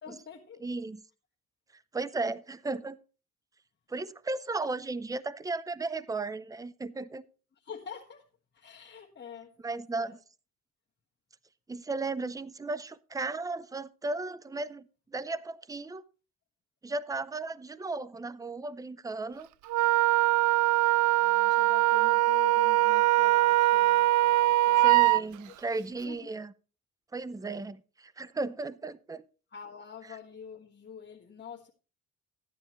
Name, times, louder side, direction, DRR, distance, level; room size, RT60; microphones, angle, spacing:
voice 1, 0.0-0.6 7.5-8.3 8.5-10.1 18.0-18.1 21.2-25.5 26.0-26.3 29.5-31.7, left 7 dB, 35° left, 1.4 m, -46 dB
voice 2, 0.6-1.0 1.9-3.0 3.9-7.2 9.6-10.2 11.7-14.8 15.1-16.0 16.8-19.5 24.8-26.5 27.1-29.2, right 3 dB, 10° right, 0.6 m, -35 dB
Wind instrument woodwind instrument, 19.7-25.2, right 17 dB, 75° right, 0.4 m, -22 dB
14.0 x 9.9 x 3.0 m
cardioid pair, 90°, 30 cm